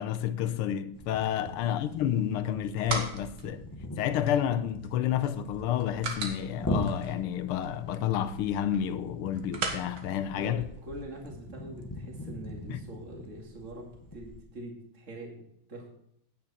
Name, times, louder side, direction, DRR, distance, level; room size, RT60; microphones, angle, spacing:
voice 1, 0.0-3.6 4.0-10.6 12.7-12.8, left 10 dB, 90° left, 1.7 m, -30 dB
sound 1, 0.9-14.4, left 1 dB, 20° left, 0.5 m, -41 dB
sound 2, 2.3-11.2, right 4 dB, 75° right, 2.4 m, -41 dB
voice 2, 10.4-15.9, right 1 dB, 35° right, 2.5 m, -44 dB
10.0 x 9.4 x 4.2 m
omnidirectional pair, 2.3 m